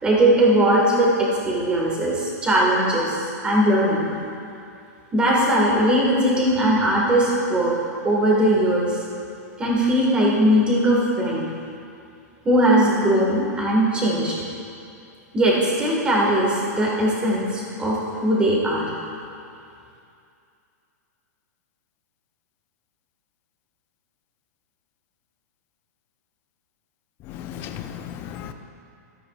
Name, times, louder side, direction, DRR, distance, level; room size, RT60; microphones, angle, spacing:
voice 1, 0.0-4.1 5.1-7.7 8.0-9.0 9.6-11.5 12.5-14.3 15.3-18.9, right 1 dB, 10° right, -4 dB, 1.7 m, -19 dB
voice 2, 27.3-28.5, left 9 dB, 25° left, 7 dB, 0.5 m, -35 dB
13.0 x 13.0 x 2.4 m, 2.5 s
hypercardioid pair, 160°, 9 cm